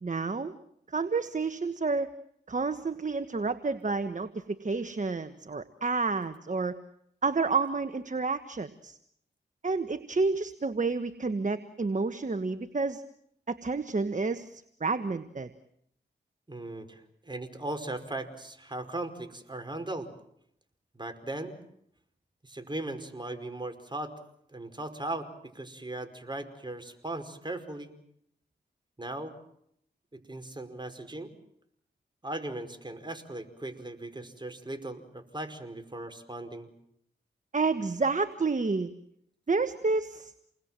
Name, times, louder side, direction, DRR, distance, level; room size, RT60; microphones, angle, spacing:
voice 1, 0.0-0.5 0.9-2.1 2.5-6.8 7.2-9.0 9.6-13.0 13.5-15.5 37.5-38.9 39.5-40.3, right 4 dB, 40° right, 11 dB, 1.5 m, -30 dB
voice 2, 16.5-20.1 20.9-21.6 22.4-24.1 24.5-25.3 25.5-27.9 29.0-29.3 30.1-31.3 32.2-36.7, right 2 dB, 25° right, 7 dB, 5.1 m, -38 dB
29.0 x 20.5 x 7.6 m, 0.71 s
cardioid pair, 45°, 20 cm